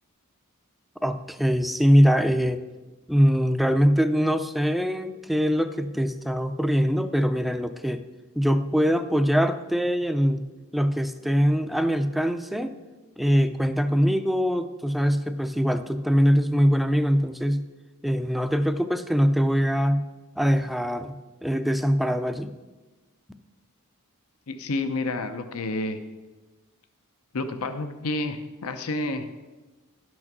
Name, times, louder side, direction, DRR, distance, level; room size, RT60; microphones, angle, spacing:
voice 1, 1.0-2.6 3.1-8.0 8.4-10.4 10.7-12.7 13.2-17.6 18.0-20.0 20.4-21.2 21.4-22.5, equal, ahead, 9 dB, 0.4 m, -22 dB
voice 2, 24.5-26.0 27.3-29.3, left 2 dB, 70° left, 9 dB, 0.7 m, -29 dB
11.5 x 6.2 x 6.0 m, 1.2 s
head